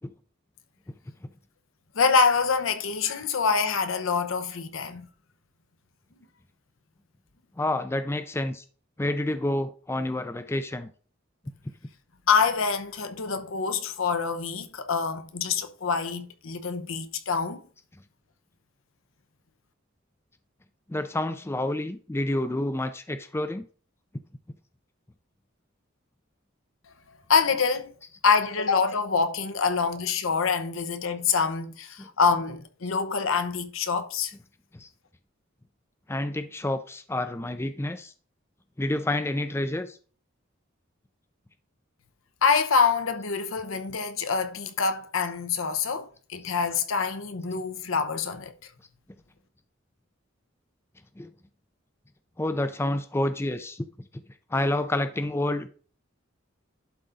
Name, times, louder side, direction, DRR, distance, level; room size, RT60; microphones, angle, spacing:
voice 1, 1.9-5.1 12.3-17.6 27.1-27.9 28.2-34.3 42.4-48.5, left 5 dB, 80° left, 0.9 m, -26 dB
voice 2, 7.6-8.6 9.0-10.9 20.9-23.7 34.7-34.9 36.1-38.1 38.8-40.0 51.2-51.3 52.4-53.9 54.1-54.2 54.5-55.7, left 1 dB, 10° left, 0.4 m, -29 dB
11.5 x 3.9 x 3.8 m
head